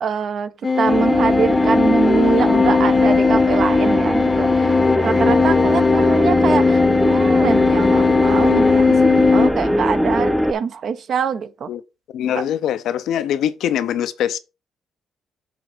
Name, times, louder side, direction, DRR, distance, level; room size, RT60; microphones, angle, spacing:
voice 1, 0.0-0.5 0.8-11.7 12.3-12.4, right 6 dB, 60° right, 0.8 m, -24 dB
sound 1, 0.6-9.5, left 4 dB, 35° left, 0.8 m, -17 dB
sound 2, 0.9-10.5, equal, ahead, 0.5 m, -20 dB
voice 2, 12.1-14.4, left 10 dB, 80° left, 0.7 m, -22 dB
6.9 x 3.4 x 6.1 m
cardioid pair, 90°, 0 cm